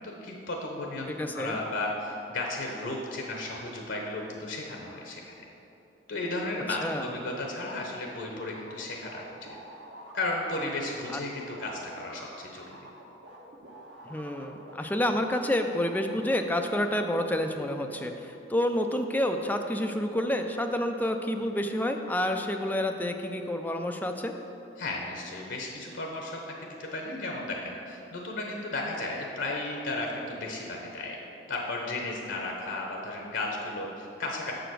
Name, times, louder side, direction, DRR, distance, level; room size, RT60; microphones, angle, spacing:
voice 1, 0.0-5.3 6.1-9.2 10.1-12.8 24.8-31.2 31.5-34.5, left 2 dB, 85° left, 0 dB, 0.9 m, -34 dB
voice 2, 1.2-1.6 6.8-7.0 11.1-11.2 14.1-24.3, left 1 dB, 10° left, 5 dB, 0.4 m, -29 dB
sound 1, 8.4-15.5 15.7-16.7, right 2 dB, 80° right, 1.0 m, -48 dB
6.7 x 5.0 x 6.1 m, 3.0 s
head